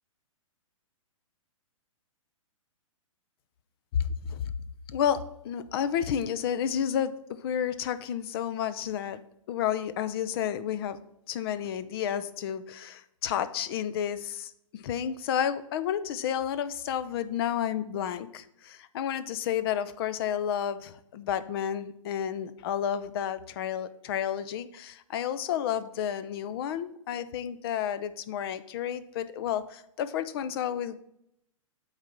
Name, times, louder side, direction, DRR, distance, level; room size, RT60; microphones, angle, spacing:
voice 1, 4.9-9.2 9.5-11.0 11.3-30.9, left 9 dB, 45° left, 14 dB, 0.6 m, -31 dB
8.7 x 4.1 x 5.7 m, 0.77 s
hypercardioid pair, 125°, 17 cm